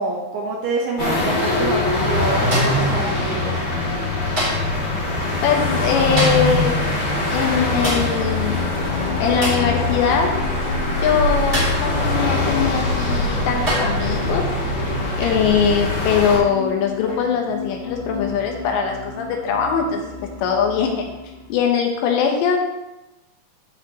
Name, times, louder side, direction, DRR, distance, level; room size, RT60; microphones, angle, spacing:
voice 1, 0.0-3.6, right 3 dB, 75° right, -1 dB, 2.5 m, -26 dB
sound 1, 1.0-16.4, left 2 dB, 40° left, 3.0 m, -22 dB
sound 2, 2.5-2.9 4.4-4.8 6.2-6.6 7.8-8.2 9.4-9.7 11.5-11.9 12.9-13.0 13.7-14.0 15.2-15.5 17.1-17.3, right 1 dB, 15° right, 2.7 m, -25 dB
sound 3, 3.0-21.6, left 4 dB, 55° right, 3.7 m, -35 dB
voice 2, 5.4-8.7 9.2-10.4 11.0-14.5 15.2-20.1 20.4-21.1 21.5-22.7, left 6 dB, 75° left, 2 dB, 3.0 m, -21 dB
14.0 x 5.7 x 3.0 m, 0.99 s
omnidirectional pair, 5.5 m